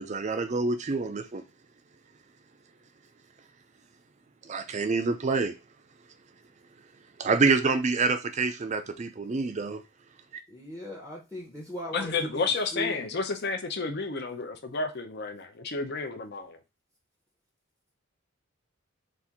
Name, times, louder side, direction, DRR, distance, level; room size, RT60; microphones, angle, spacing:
voice 1, 0.0-1.4 4.5-5.6 7.2-9.8, right 4 dB, 35° right, 0.4 m, -27 dB
voice 2, 10.5-13.1, left 1 dB, 10° left, 0.7 m, -38 dB
voice 3, 11.9-16.6, left 4 dB, 50° left, 0.6 m, -31 dB
4.2 x 2.5 x 3.5 m
head